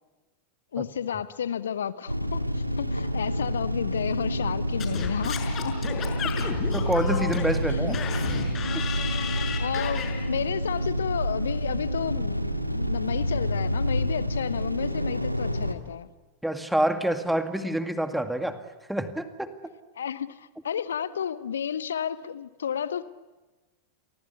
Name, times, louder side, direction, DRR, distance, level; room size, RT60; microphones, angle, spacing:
voice 1, 0.7-5.7 7.7-7.8 9.6-16.1 20.0-23.0, left 8 dB, 65° left, 16 dB, 0.8 m, -32 dB
sound 1, 2.1-15.7, equal, 90° right, 1.8 m, -28 dB
Singing / Scratching (performance technique), 4.8-10.1, left 8 dB, 30° left, 5.8 m, -33 dB
voice 2, 6.7-8.0 16.4-18.6 18.9-19.5, right 1 dB, 5° right, 8 dB, 2.1 m, -27 dB
30.0 x 23.5 x 8.4 m, 1.2 s
figure-of-eight pair, 90°, 0 cm